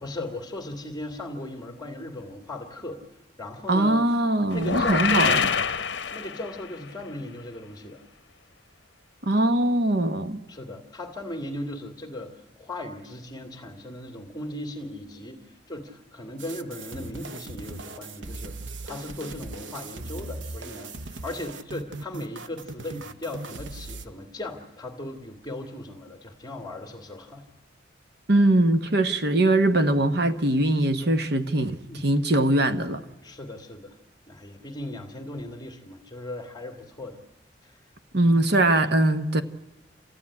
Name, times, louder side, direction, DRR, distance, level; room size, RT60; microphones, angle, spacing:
voice 1, 0.0-3.0 3.4-4.0 4.5-5.5 6.1-8.0 10.5-18.6 18.8-27.4 31.9-32.0 33.2-34.0 34.3-37.2 37.6-37.8 38.2-38.4, left 1 dB, 20° left, 2.1 m, -37 dB
voice 2, 3.7-5.5 9.3-10.4 28.3-33.0 38.1-39.4, right 1 dB, 60° right, 1.3 m, -21 dB
sound 1, 4.5-6.8, left 6 dB, 70° left, 0.8 m, -25 dB
sound 2, 16.4-24.1, right 3 dB, 85° right, 0.9 m, -39 dB
28.0 x 14.5 x 9.9 m
head